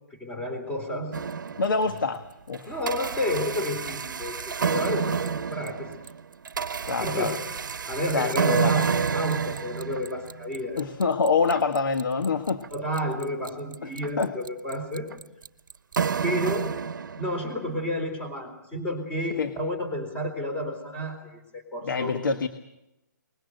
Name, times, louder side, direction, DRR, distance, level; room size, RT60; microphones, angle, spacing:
voice 1, 0.2-1.1 2.7-5.9 6.7-7.4 7.9-10.9 12.7-15.1 16.2-16.7 17.2-22.2, left 1 dB, 10° left, 5 dB, 4.1 m, -31 dB
sound 1, 1.1-2.1 2.5-17.6, right 6 dB, 75° right, 0.9 m, -29 dB
voice 2, 1.6-2.8 6.9-7.4 8.1-9.1 10.8-12.6 13.8-13.9 14.2-14.3 19.4-19.5 21.8-22.5, left 4 dB, 80° left, 8 dB, 1.4 m, -26 dB
21.5 x 20.5 x 8.0 m, 0.91 s
hypercardioid pair, 155°, 10 cm